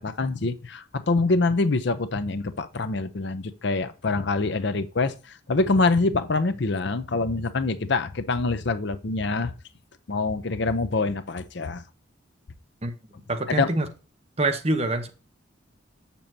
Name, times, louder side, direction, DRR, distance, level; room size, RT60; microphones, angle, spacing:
voice 1, 0.0-9.5 10.1-11.8 13.5-13.7, left 3 dB, 55° left, 0.6 m, -25 dB
voice 2, 13.3-13.9 14.4-15.1, right 2 dB, 30° right, 0.9 m, -25 dB
7.5 x 6.9 x 2.7 m
head